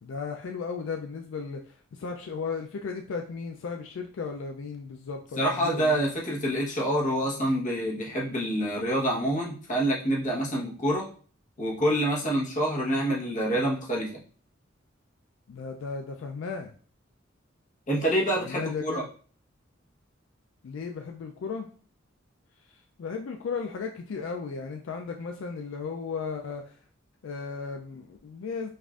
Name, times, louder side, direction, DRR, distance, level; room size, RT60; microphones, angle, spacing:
voice 1, 0.0-6.1 15.5-16.7 18.4-19.1 20.6-21.7 22.7-26.8 27.2-28.7, left 5 dB, 75° left, 4 dB, 0.4 m, -35 dB
voice 2, 5.4-11.1 11.6-14.2 17.9-19.0, right 1 dB, 40° left, -4 dB, 1.1 m, -27 dB
5.3 x 2.5 x 2.4 m, 0.43 s
head